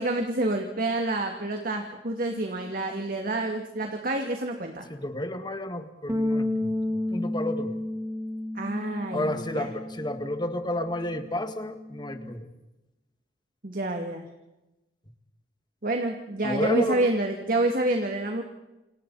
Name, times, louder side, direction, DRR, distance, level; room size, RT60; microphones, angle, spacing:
voice 1, 0.0-4.8 8.5-9.7 13.6-14.3 15.8-18.4, right 2 dB, 55° right, 3 dB, 2.7 m, -28 dB
voice 2, 4.9-7.7 9.1-12.5 16.4-17.1, left 1 dB, 25° left, 7 dB, 2.0 m, -31 dB
Bass guitar, 6.1-12.3, left 1 dB, 15° right, 2.3 m, -32 dB
29.0 x 28.0 x 4.3 m, 0.99 s
head